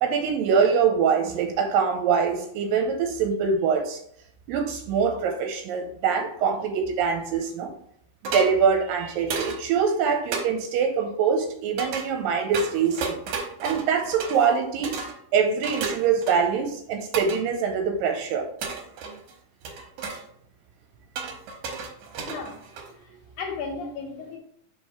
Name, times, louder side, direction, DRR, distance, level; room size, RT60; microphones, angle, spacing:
voice 1, 0.0-4.0 4.5-7.7 8.3-13.2 13.6-15.0 15.3-18.5, right 6 dB, 85° right, 5 dB, 2.3 m, -24 dB
sound 1, 8.2-8.5 9.3-9.6 10.3-10.5 11.8-12.1 12.5-14.6 14.8-15.2 15.6-16.6 17.1-17.4 18.6-19.3 19.6-20.2 21.2-23.0, right 4 dB, 70° right, 2.1 m, -33 dB
voice 2, 22.2-22.6 23.0-24.4, left 4 dB, 75° left, 1 dB, 2.6 m, -35 dB
4.9 x 4.8 x 4.2 m, 0.66 s
omnidirectional pair, 4.1 m